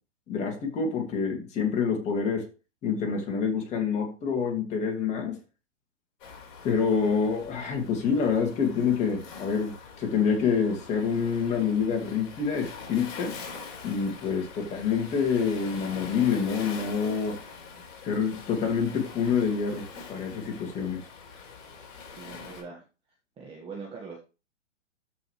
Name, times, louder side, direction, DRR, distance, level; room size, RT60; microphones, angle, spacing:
voice 1, 0.3-2.5 2.8-5.4 6.6-13.3 13.8-17.4 18.0-19.8 20.1-21.0, left 6 dB, 20° left, 2 dB, 2.1 m, -27 dB
Waves surf, 6.2-22.6, left 5 dB, 40° left, 4.6 m, -44 dB
voice 2, 22.1-22.8 23.4-24.2, right 4 dB, 15° right, -2 dB, 1.5 m, -42 dB
13.0 x 5.1 x 3.1 m, 0.32 s
hypercardioid pair, 140°, 37 cm